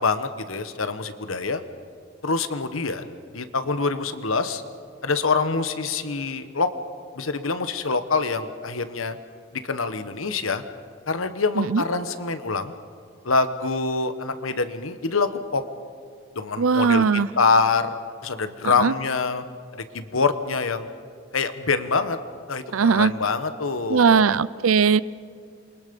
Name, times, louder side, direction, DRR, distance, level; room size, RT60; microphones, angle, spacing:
voice 1, 0.0-1.6 2.2-4.6 5.0-6.7 7.1-9.2 9.5-10.6 11.1-12.7 13.2-15.6 16.3-17.0 17.4-19.4 19.7-20.9 21.3-22.2 22.5-24.3, left 4 dB, 85° left, 10 dB, 1.2 m, -25 dB
voice 2, 16.6-17.3 18.6-18.9 22.7-23.1 23.9-25.0, right 5 dB, 85° right, 19 dB, 0.5 m, -19 dB
28.5 x 23.5 x 5.4 m, 2.1 s
head